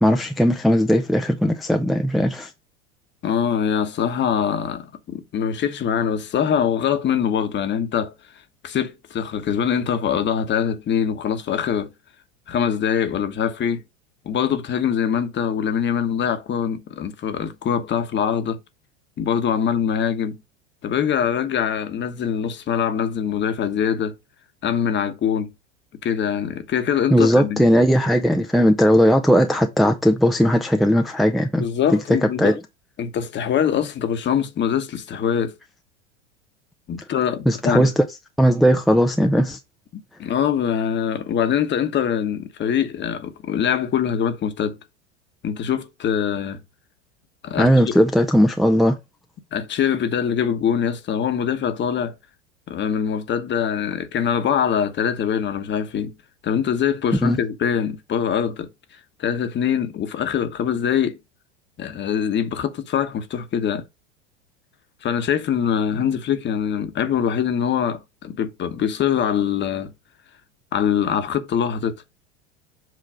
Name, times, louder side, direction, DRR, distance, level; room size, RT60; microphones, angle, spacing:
voice 1, 0.0-2.5 27.1-31.6 32.4-32.5 37.5-37.9 38.4-39.6 47.6-49.0 57.2-57.4, equal, ahead, 0.6 m, -17 dB
voice 2, 3.2-8.1 8.6-11.9 12.5-13.8 14.2-18.6 19.2-20.4 20.8-24.1 24.6-25.5 26.0-27.6 31.6-32.6 33.0-35.5 36.9-37.9 39.9-44.8 45.4-46.6 47.4-47.7 49.5-52.1 52.7-56.1 56.4-58.7 59.2-61.2 61.8-63.8 65.0-69.9 70.7-71.9, left 8 dB, 30° left, 1.2 m, -23 dB
7.7 x 3.1 x 5.0 m
hypercardioid pair, 95°, 36 cm